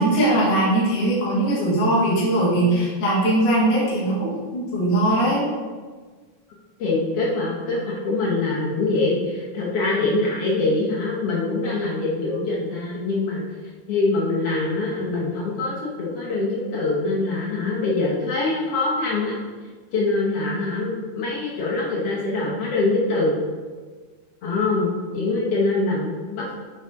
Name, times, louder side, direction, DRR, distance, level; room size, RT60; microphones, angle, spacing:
voice 1, 0.0-5.4, right 1 dB, 40° left, -7 dB, 1.9 m, -20 dB
voice 2, 6.8-13.4 13.9-19.4 19.9-23.3 24.4-26.6, left 3 dB, 70° left, -5 dB, 1.5 m, -24 dB
7.6 x 4.8 x 3.4 m, 1.5 s
omnidirectional pair, 4.0 m